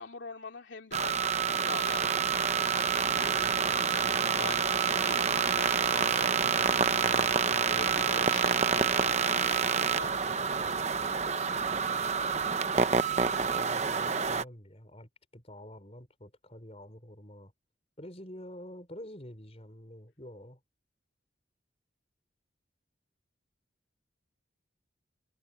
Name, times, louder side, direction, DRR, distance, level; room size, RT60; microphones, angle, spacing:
voice 1, 0.0-2.5 3.1-3.8 4.4-5.2 5.5-5.7 6.1-6.3 7.7-10.5, left 4 dB, 75° left, 2.6 m, -44 dB
sound 1, 0.9-14.4, right 6 dB, 35° right, 0.8 m, -27 dB
voice 2, 3.3-4.6 5.9-6.7 7.0-7.9 13.5-17.5 18.0-20.6, left 1 dB, 35° left, 5.2 m, -48 dB
head